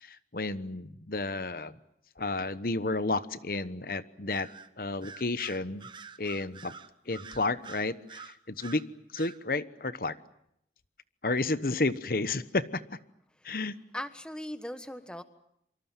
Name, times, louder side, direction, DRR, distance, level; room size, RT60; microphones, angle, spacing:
voice 1, 0.0-1.7 2.2-4.5 4.8-5.9 6.2-6.7 7.1-8.8 9.1-10.2 11.2-12.8 13.4-13.8, left 3 dB, 55° left, 14 dB, 1.1 m, -31 dB
Bird vocalization bird call bird song, 4.3-4.7 5.0-8.8 9.1-9.4, right 5 dB, 25° right, 1.0 m, -47 dB
voice 2, 13.9-15.2, left 1 dB, 5° left, 10 dB, 1.3 m, -39 dB
27.0 x 25.0 x 7.4 m, 0.75 s
head